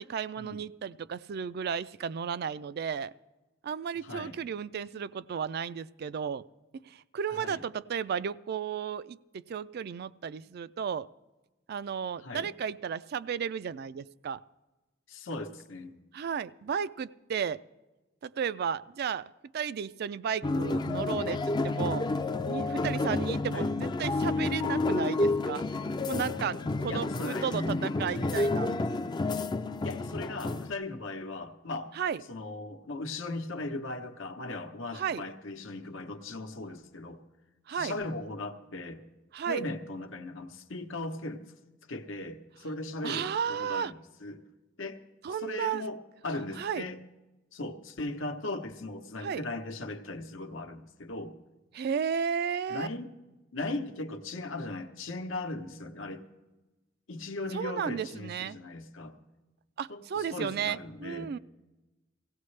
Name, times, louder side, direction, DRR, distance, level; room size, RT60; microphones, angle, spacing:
voice 1, 0.0-3.1 3.6-6.4 6.7-11.1 11.7-14.4 16.1-17.6 18.2-19.2 19.5-22.1 22.5-25.6 26.1-28.7 31.9-32.2 34.9-35.2 37.7-38.0 39.3-39.6 43.0-43.9 45.2-45.8 46.6-46.9 49.2-49.4 51.7-52.9 57.5-58.6 59.8-61.4, right 7 dB, 55° right, 17 dB, 0.3 m, -33 dB
voice 2, 4.0-4.4 7.3-7.6 12.2-12.5 15.1-16.0 23.5-23.7 26.9-27.5 29.8-31.9 32.3-37.2 37.7-39.0 39.5-41.4 41.9-43.9 44.2-44.4 44.8-45.0 45.4-46.0 46.2-47.0 47.5-51.3 52.7-53.1 53.5-56.2 57.1-59.2 59.9-61.3, left 2 dB, 80° left, 7 dB, 1.0 m, -38 dB
sound 1, 20.4-30.7, left 2 dB, 20° left, 0.4 m, -30 dB
17.5 x 16.5 x 3.2 m, 1.1 s
head